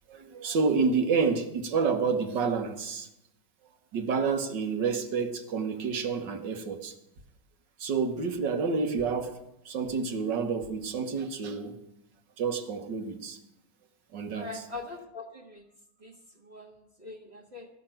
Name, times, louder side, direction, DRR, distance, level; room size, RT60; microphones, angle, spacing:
voice 1, 0.1-3.1 3.9-6.9 7.8-9.4 9.6-11.8 12.4-13.4 14.1-14.5, right 5 dB, 65° right, 6 dB, 1.8 m, -29 dB
voice 2, 14.3-15.7 16.0-17.7, left 3 dB, 35° right, 0 dB, 1.6 m, -43 dB
14.5 x 5.9 x 9.0 m, 0.86 s
omnidirectional pair, 2.1 m